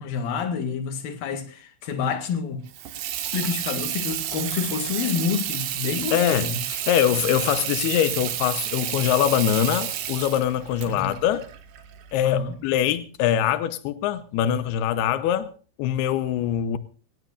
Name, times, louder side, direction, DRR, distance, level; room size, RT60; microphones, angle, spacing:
voice 1, 0.0-2.6 3.3-6.6 10.9-11.1 12.2-12.6, left 6 dB, 55° left, 3.1 m, -28 dB
Water tap faucet / Sink (filling or washing), 2.7-12.3, right 11 dB, 65° right, 3.4 m, -30 dB
voice 2, 6.1-11.4 12.1-15.5 15.8-16.8, left 10 dB, 85° left, 2.2 m, -23 dB
23.0 x 18.5 x 2.5 m
omnidirectional pair, 5.8 m